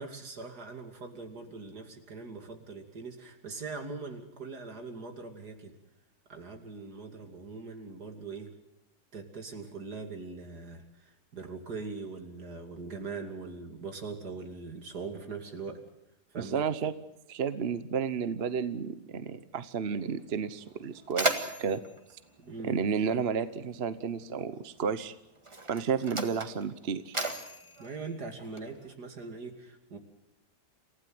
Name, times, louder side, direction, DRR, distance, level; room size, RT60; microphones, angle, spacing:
voice 1, 0.0-5.8 6.3-8.5 9.1-15.8 16.3-16.6 22.4-22.8 27.8-30.0, right 4 dB, 70° right, 5 dB, 3.2 m, -41 dB
voice 2, 16.4-16.9 17.3-21.8 22.6-25.1 25.7-27.2, right 6 dB, 45° right, 12 dB, 1.0 m, -32 dB
Mechanisms, 20.2-20.3 20.7-23.4 24.4-24.5 25.3-28.9, right 2 dB, 20° right, 1.7 m, -36 dB
28.0 x 16.0 x 7.8 m, 0.88 s
omnidirectional pair, 1.8 m